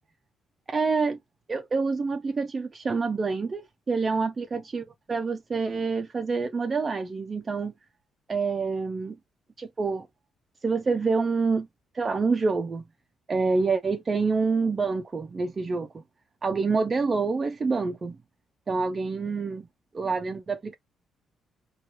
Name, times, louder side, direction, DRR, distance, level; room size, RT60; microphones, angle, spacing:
voice 1, 0.7-1.2 1.5-7.7 8.3-9.2 9.6-10.1 10.6-11.7 11.9-12.8 13.3-16.0 16.4-18.2 18.7-19.7 19.9-20.8, right 4 dB, 35° right, 0.4 m, -27 dB
2.9 x 2.3 x 2.9 m
cardioid pair, 90°, 0 cm